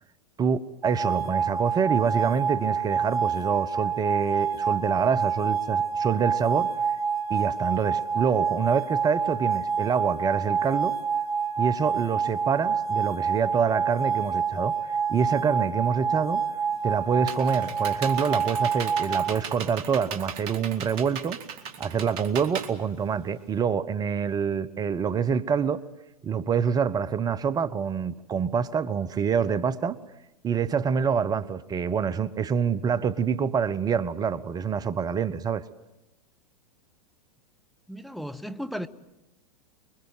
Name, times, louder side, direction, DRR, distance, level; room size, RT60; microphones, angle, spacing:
voice 1, 0.4-6.7 7.3-11.0 11.6-16.4 16.8-21.4 21.8-25.8 26.2-30.0 30.4-35.6, right 6 dB, 20° right, 0.8 m, -26 dB
sound 1, 0.8-19.3, right 6 dB, 70° right, 1.3 m, -27 dB
Computer keyboard, 16.7-23.6, right 7 dB, 45° right, 2.2 m, -38 dB
voice 2, 37.9-38.9, equal, ahead, 1.1 m, -35 dB
25.5 x 23.0 x 7.7 m
figure-of-eight pair, 95°, 19 cm